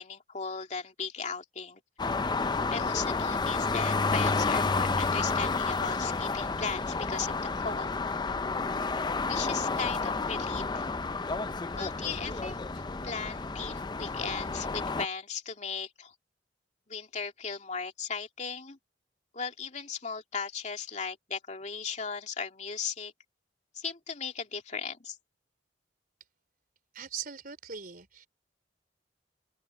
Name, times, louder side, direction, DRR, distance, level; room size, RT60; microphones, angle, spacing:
voice 1, 0.0-1.8 2.7-7.9 9.3-10.9 11.8-12.6 13.0-16.1 16.9-18.8 19.3-23.1 23.7-25.2, left 5 dB, 40° left, 2.7 m, -37 dB
sound 1, 2.0-15.1, left 4 dB, 25° left, 0.5 m, -30 dB
voice 2, 26.9-28.3, right 7 dB, 55° right, 4.2 m, -40 dB
open air
head